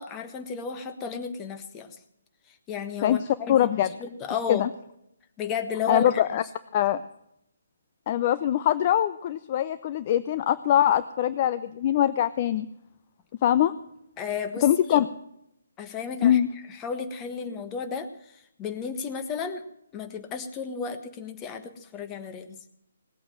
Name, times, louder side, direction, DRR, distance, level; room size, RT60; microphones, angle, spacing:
voice 1, 0.0-2.0 2.7-3.7 4.0-4.7 5.4-6.1 14.2-15.0 15.8-16.4 16.7-19.6 19.9-22.6, left 6 dB, 20° left, 7 dB, 1.4 m, -33 dB
voice 2, 3.5-3.9 4.5-4.7 5.9-6.4 6.7-7.0 8.1-12.7 13.4-13.7 14.6-15.1 16.2-16.5, left 11 dB, 35° left, 13 dB, 0.5 m, -23 dB
18.5 x 8.6 x 7.7 m, 0.77 s
figure-of-eight pair, 140°, 0 cm